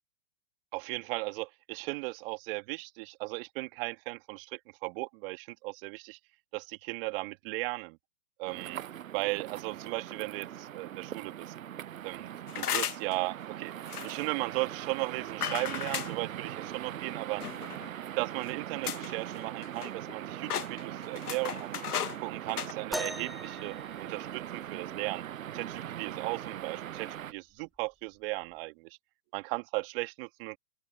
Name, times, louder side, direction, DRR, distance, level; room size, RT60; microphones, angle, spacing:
voice 1, 0.7-6.2 6.5-8.0 8.4-8.8 9.1-11.5 12.0-13.7 14.0-17.4 18.2-21.8 22.2-25.2 25.5-29.0 29.3-30.6, right 25 dB, 40° right, 2.2 m, -36 dB
sound 1, 8.5-27.3, right 11 dB, 60° right, 7.3 m, -41 dB
sound 2, 12.5-13.1 13.9-14.2 15.4-16.1 17.4-17.9 18.4-18.5 18.8-19.1 19.4-20.1 20.4-22.2 22.5-22.7, left 9 dB, 75° left, 1.5 m, -35 dB
sound 3, 22.9-24.8 26.5-26.6 27.4-27.6 28.5-28.6, equal, ahead, 0.8 m, -40 dB
open air
hypercardioid pair, 130°, 45 cm